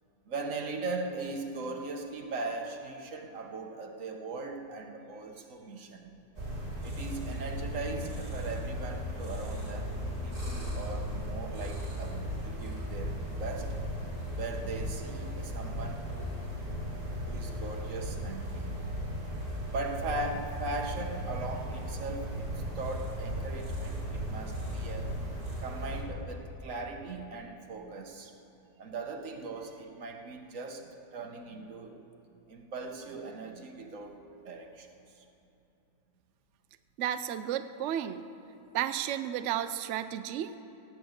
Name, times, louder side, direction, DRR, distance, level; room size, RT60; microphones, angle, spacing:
voice 1, 0.3-6.1 6.8-9.9 10.2-13.7 14.3-16.3 17.2-18.8 19.6-25.2 25.6-28.3 28.8-32.0 32.5-34.9, right 3 dB, 50° right, 3 dB, 1.5 m, -39 dB
sound 1, 6.4-26.0, equal, 30° right, 3.1 m, -36 dB
voice 2, 37.0-38.2 38.7-40.6, right 11 dB, 80° right, 11 dB, 0.6 m, -32 dB
17.0 x 8.6 x 8.0 m, 2.8 s
omnidirectional pair, 1.8 m